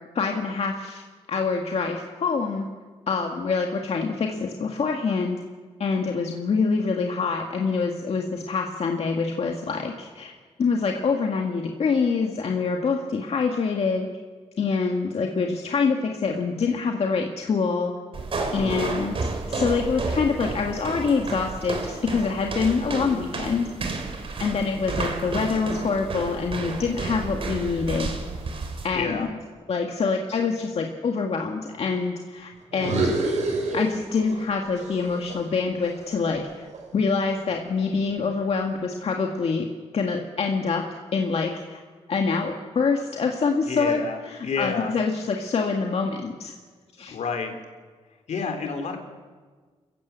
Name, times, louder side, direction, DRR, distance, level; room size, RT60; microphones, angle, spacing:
voice 1, 0.1-1.0 1.3-2.6 3.1-5.4 5.8-10.3 10.6-14.1 14.6-17.9 18.5-23.7 24.4-28.2 28.8-29.3 29.7-33.1 33.7-36.7 36.9-39.7 39.9-40.8 41.1-41.8 42.1-46.5 47.0-47.2, left 4 dB, 60° left, 2 dB, 1.9 m, -25 dB
sound 1, 18.1-28.9, right 3 dB, 50° right, 3.5 m, -31 dB
voice 2, 18.6-18.9 28.9-29.3 43.7-44.9 47.1-47.5 48.3-49.0, left 5 dB, 75° left, 4 dB, 3.7 m, -29 dB
sound 2, 32.7-34.5 34.8-37.0, right 2 dB, 75° right, 5.8 m, -28 dB
29.0 x 15.0 x 8.4 m, 1.5 s
wide cardioid pair, 110°, 12 cm